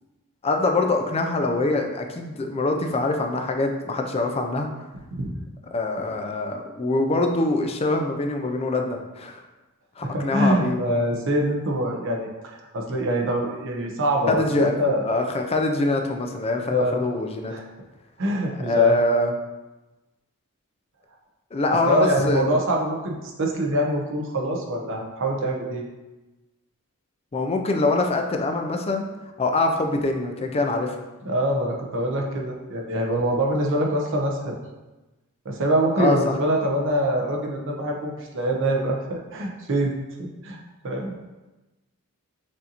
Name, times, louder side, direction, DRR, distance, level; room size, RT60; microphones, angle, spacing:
voice 1, 0.4-4.7 5.7-9.4 10.0-10.8 14.3-17.5 18.6-19.3 21.5-22.5 27.3-29.1 29.4-31.0 36.0-36.4, left 2 dB, 25° left, 4 dB, 0.4 m, -24 dB
voice 2, 10.0-15.0 16.7-17.0 17.5-17.6 18.2-19.0 21.9-25.8 31.2-34.5 35.4-39.9 40.2-41.1, right 1 dB, 60° right, 0 dB, 0.8 m, -24 dB
6.3 x 2.6 x 2.8 m, 1.1 s
head